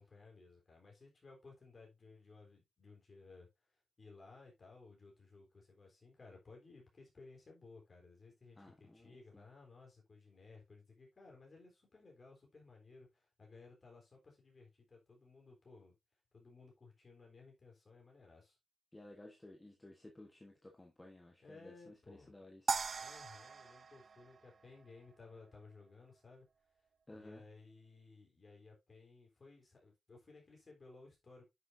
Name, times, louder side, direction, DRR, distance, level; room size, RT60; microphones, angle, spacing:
voice 1, 0.0-15.9 16.3-18.6 21.4-22.3 23.0-26.5 27.1-31.5, left 3 dB, 30° left, 3.7 m, -59 dB
voice 2, 8.5-9.4 18.9-22.7 27.1-27.4, left 1 dB, 15° left, 1.2 m, -56 dB
sound 1, 22.7-25.1, right 5 dB, 40° right, 0.4 m, -40 dB
9.5 x 6.5 x 2.6 m
wide cardioid pair, 165°, 0 cm